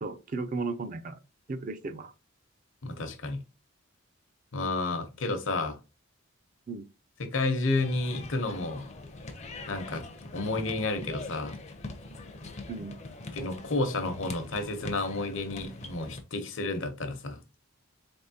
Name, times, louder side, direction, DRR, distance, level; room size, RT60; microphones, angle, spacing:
voice 1, 0.0-1.2 1.5-2.1 5.2-5.3 6.7-6.8 12.7-13.0, right 3 dB, 40° right, 0.4 m, -35 dB
voice 2, 2.8-3.4 4.5-5.8 7.2-8.8 9.7-10.0 10.3-11.6 13.3-17.4, left 2 dB, 65° left, 0.8 m, -31 dB
sound 1, 7.7-16.2, left 2 dB, 30° left, 0.5 m, -43 dB
4.1 x 3.5 x 2.7 m
head